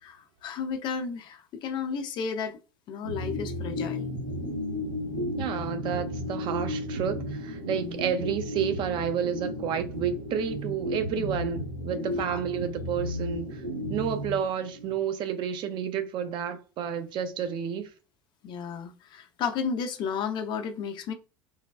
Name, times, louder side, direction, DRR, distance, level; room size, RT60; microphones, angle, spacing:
voice 1, 0.0-2.6 2.9-4.1 7.7-8.0 11.2-11.3 12.1-12.4 18.4-21.1, left 6 dB, 40° left, 0.6 m, -33 dB
sound 1, 3.0-14.9, left 1 dB, 85° right, 1.6 m, -34 dB
voice 2, 5.3-13.6 13.9-17.9, right 8 dB, 45° right, 0.5 m, -30 dB
3.3 x 2.2 x 2.3 m
figure-of-eight pair, 70°, 12 cm